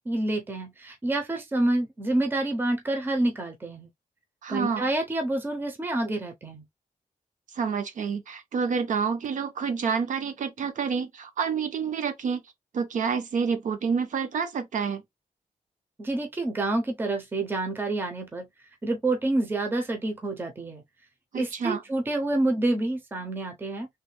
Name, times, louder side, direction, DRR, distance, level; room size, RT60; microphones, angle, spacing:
voice 1, 0.1-3.9 4.5-6.6 16.0-18.5 18.8-20.8 21.3-23.9, right 2 dB, 15° right, 0.6 m, -28 dB
voice 2, 4.4-4.9 7.5-12.4 12.7-15.0 21.3-21.8, right 6 dB, 65° right, 0.8 m, -28 dB
3.2 x 2.2 x 3.2 m
wide cardioid pair, 170°, 14 cm